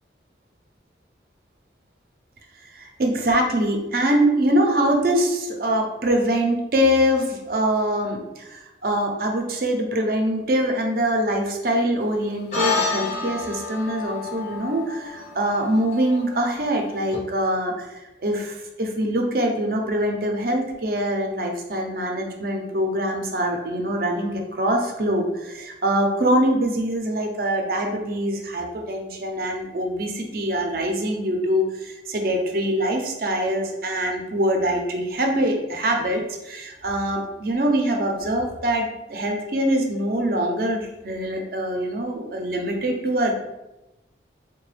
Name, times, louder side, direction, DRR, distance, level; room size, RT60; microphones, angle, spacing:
voice 1, 2.7-43.3, right 1 dB, 50° right, 2 dB, 0.5 m, -24 dB
sound 1, 12.5-17.2, left 4 dB, 40° left, 0.7 m, -29 dB
3.8 x 2.2 x 3.2 m, 0.98 s
head